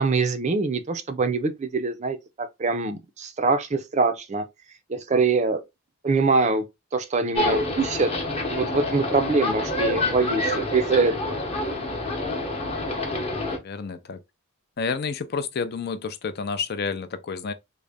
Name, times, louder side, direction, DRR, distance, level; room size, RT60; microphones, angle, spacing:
voice 1, 0.0-4.4 4.9-5.6 6.0-6.6 6.9-8.1 8.5-11.4, right 4 dB, 30° right, 0.4 m, -24 dB
sound 1, 7.3-13.6, left 1 dB, 25° left, 0.8 m, -27 dB
voice 2, 13.4-14.2 14.8-17.5, left 5 dB, 45° left, 0.4 m, -30 dB
3.8 x 2.1 x 3.4 m
head